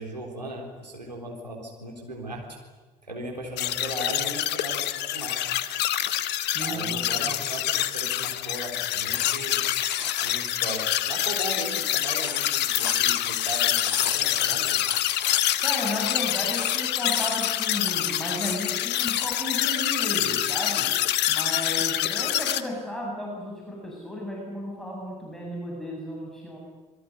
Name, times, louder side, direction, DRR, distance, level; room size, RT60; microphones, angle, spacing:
voice 1, 0.0-2.6 3.0-5.6 6.6-9.6 10.2-14.8, right 1 dB, 85° right, -1 dB, 3.8 m, -37 dB
sound 1, 3.6-22.6, left 13 dB, 55° left, 1.4 m, -26 dB
voice 2, 6.3-6.9 7.2-7.3 15.6-21.0 21.3-26.6, left 1 dB, ahead, -2 dB, 7.9 m, -34 dB
sound 2, 8.9-10.4 11.9-19.5 19.8-19.9, left 7 dB, 80° left, 1.1 m, -36 dB
28.0 x 21.0 x 9.7 m, 1.2 s
figure-of-eight pair, 50°, 21 cm